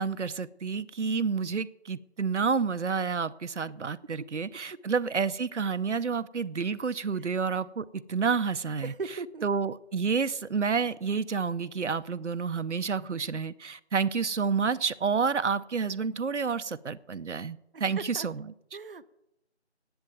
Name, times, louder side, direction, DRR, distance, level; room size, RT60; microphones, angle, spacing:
voice 1, 0.0-18.5, right 5 dB, 90° right, 13 dB, 0.7 m, -29 dB
voice 2, 8.8-9.4 18.1-18.3 18.7-19.1, right 4 dB, 55° right, 12 dB, 0.5 m, -37 dB
10.5 x 8.7 x 9.1 m, 0.87 s
figure-of-eight pair, 170°, 34 cm